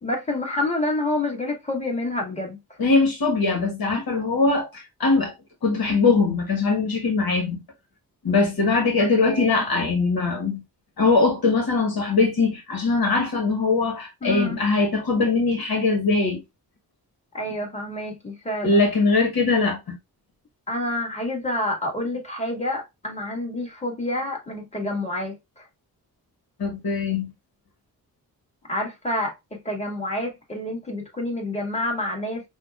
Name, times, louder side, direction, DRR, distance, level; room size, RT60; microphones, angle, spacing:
voice 1, 0.0-2.6 9.0-9.6 14.2-14.6 17.3-18.8 20.7-25.6 28.7-29.3 29.7-32.4, left 1 dB, 15° left, 2.1 m, -28 dB
voice 2, 2.8-5.3 5.6-7.6 8.2-10.6 11.0-16.4 18.6-20.0 26.6-27.3, left 3 dB, 70° left, 1.3 m, -21 dB
5.7 x 2.4 x 2.3 m
cardioid pair, 70°, 37 cm